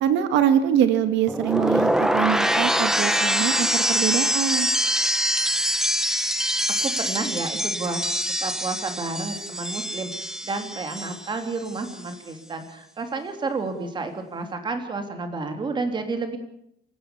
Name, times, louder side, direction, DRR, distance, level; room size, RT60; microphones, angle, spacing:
voice 1, 0.0-4.7, right 9 dB, 85° right, 10 dB, 1.7 m, -23 dB
sound 1, 1.3-11.4 11.7-12.1, equal, 5° right, 1.0 m, -24 dB
voice 2, 6.8-8.0 8.4-16.4, right 3 dB, 25° right, 6 dB, 3.2 m, -31 dB
27.5 x 16.0 x 7.1 m, 0.75 s
cardioid pair, 170°, 18 cm